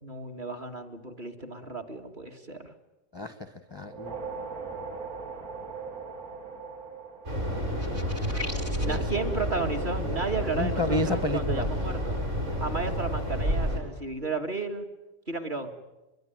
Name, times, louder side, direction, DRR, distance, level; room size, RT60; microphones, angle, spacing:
voice 1, 0.0-2.7 8.8-12.2 12.6-14.9 15.3-15.8, right 4 dB, 30° right, 3 dB, 2.0 m, -33 dB
voice 2, 3.1-4.2 8.8-9.0 9.3-9.4 10.6-11.7, left 1 dB, 20° left, 9 dB, 0.8 m, -30 dB
sound 1, 3.7-8.3, right 5 dB, 60° right, 3.3 m, -40 dB
sound 2, 7.2-13.8, equal, 45° right, 6.1 m, -30 dB
sound 3, 7.8-9.1, left 2 dB, 10° right, 1.3 m, -39 dB
23.0 x 22.5 x 9.3 m, 1.0 s
omnidirectional pair, 1.7 m